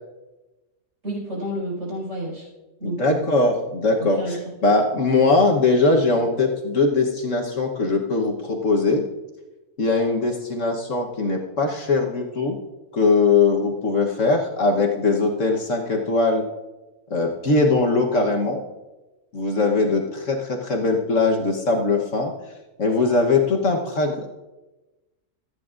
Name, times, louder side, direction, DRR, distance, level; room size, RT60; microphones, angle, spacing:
voice 1, 1.0-2.5 2.8-3.3 4.0-4.4, right 1 dB, 50° right, -4 dB, 5.8 m, -30 dB
voice 2, 2.8-9.0 9.8-12.6 12.9-16.4 17.1-18.6 19.3-22.3 22.8-24.3, left 3 dB, 55° left, 0 dB, 1.4 m, -21 dB
26.5 x 9.6 x 2.5 m, 1.1 s
omnidirectional pair, 1.7 m